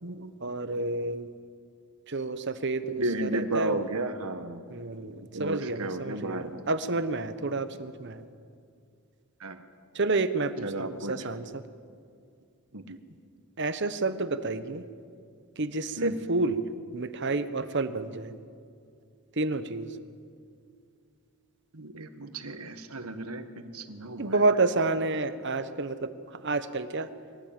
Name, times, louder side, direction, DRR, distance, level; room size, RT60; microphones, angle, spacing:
voice 1, 0.0-1.3 2.1-3.8 4.7-8.2 9.9-11.6 13.6-14.9 15.6-16.6 16.9-18.4 19.3-19.9 24.2-27.1, right 3 dB, 50° right, 11 dB, 1.1 m, -30 dB
voice 2, 3.0-4.6 5.3-6.6 9.4-9.6 10.6-11.3 12.7-13.0 16.0-16.2 21.7-24.4, right 2 dB, 75° right, 8 dB, 1.6 m, -33 dB
23.5 x 17.5 x 9.0 m, 2.3 s
head